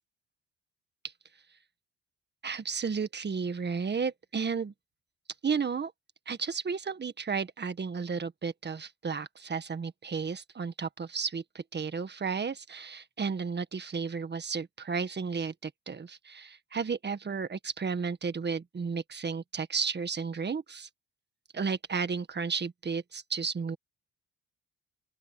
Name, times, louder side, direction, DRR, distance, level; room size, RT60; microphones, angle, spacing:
voice 1, 2.4-4.7 5.4-5.9 6.2-20.9 21.5-23.8, right 5 dB, 35° right, 1.7 m, -33 dB
open air
cardioid pair, 90°, 30 cm